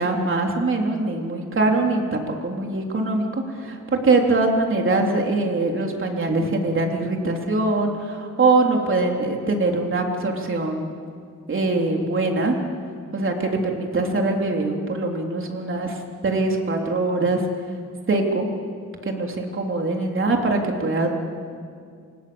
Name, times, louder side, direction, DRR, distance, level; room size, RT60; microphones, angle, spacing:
voice 1, 0.0-10.9 11.5-12.6 13.1-17.4 18.1-18.5 19.1-21.1, right 2 dB, 45° right, 1 dB, 3.6 m, -23 dB
29.5 x 26.5 x 7.2 m, 2.3 s
wide cardioid pair, 165°, 30 cm